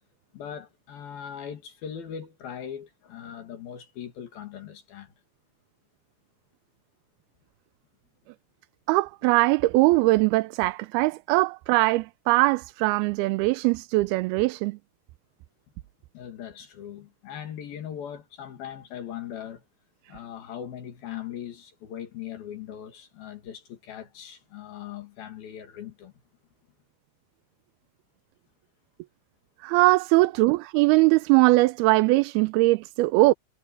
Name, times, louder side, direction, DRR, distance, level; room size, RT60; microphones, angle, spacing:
voice 1, 0.3-5.1 16.1-19.6 20.1-26.1, left 9 dB, 70° left, 3.9 m, -40 dB
voice 2, 8.9-14.8 29.6-33.3, right 21 dB, 85° right, 2.5 m, -21 dB
omnidirectional pair, 4.4 m